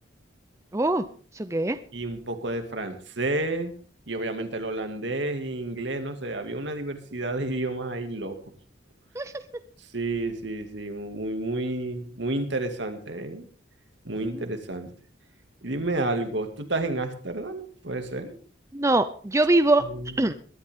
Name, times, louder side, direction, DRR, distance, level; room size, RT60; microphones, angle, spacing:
voice 1, 0.7-1.0 1.4-1.8 9.2-9.3 18.7-19.8 20.2-20.3, right 2 dB, 15° right, 10 dB, 0.6 m, -22 dB
voice 2, 1.9-3.7 4.1-8.4 9.9-13.5 14.0-14.9 15.6-18.3 19.8-20.2, right 2 dB, 70° right, 6 dB, 2.3 m, -30 dB
21.5 x 12.5 x 3.7 m, 0.41 s
head